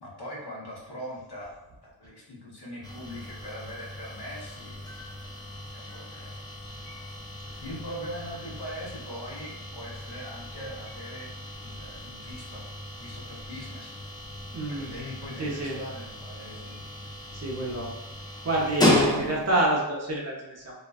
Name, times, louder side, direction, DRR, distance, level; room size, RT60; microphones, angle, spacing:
voice 1, 0.0-1.5 1.8-5.0 5.7-6.3 7.6-11.3 11.6-12.6 12.9-13.9 14.7-16.8 17.5-17.7, equal, 60° left, -4 dB, 0.9 m, -41 dB
sound 1, 2.8-19.7, left 1 dB, 10° left, 0.4 m, -34 dB
voice 2, 14.5-14.9 15.4-15.8 17.3-17.9 18.4-20.7, right 1 dB, 35° right, -2 dB, 0.6 m, -28 dB
2.4 x 2.1 x 2.3 m, 0.96 s
cardioid pair, 60°, 45 cm